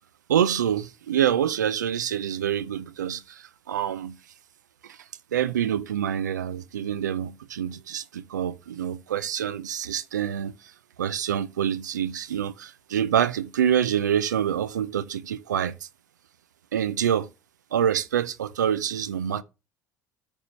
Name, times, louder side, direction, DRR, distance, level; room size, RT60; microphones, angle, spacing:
voice 1, 0.3-4.1 4.9-5.0 5.3-10.5 11.0-15.7 16.7-17.3 17.7-19.4, right 9 dB, 85° right, 0.5 m, -26 dB
9.4 x 3.7 x 6.0 m
hypercardioid pair, 65°, 9 cm